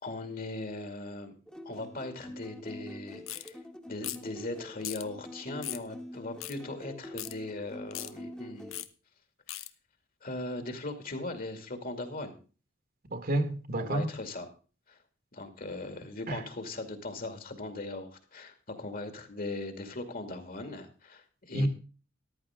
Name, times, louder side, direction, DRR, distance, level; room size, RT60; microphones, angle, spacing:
voice 1, 0.0-1.3 1.6-3.6 3.9-8.8 9.5-9.6 10.2-12.3 13.8-14.5 14.9-15.0 15.3-21.7, left 2 dB, 45° left, 2.4 m, -39 dB
sound 1, 1.5-8.8, left 1 dB, 5° left, 1.4 m, -46 dB
sound 2, 3.3-3.5 4.0-4.3 4.8-5.0 5.6-5.9 6.4-6.6 7.2-7.3 7.9-8.1 8.7-8.9 9.5-9.7, left 14 dB, 85° left, 0.9 m, -38 dB
voice 2, 13.1-14.1 16.3-16.4 21.5-21.7, right 1 dB, 50° right, 1.8 m, -29 dB
14.0 x 12.0 x 3.7 m
head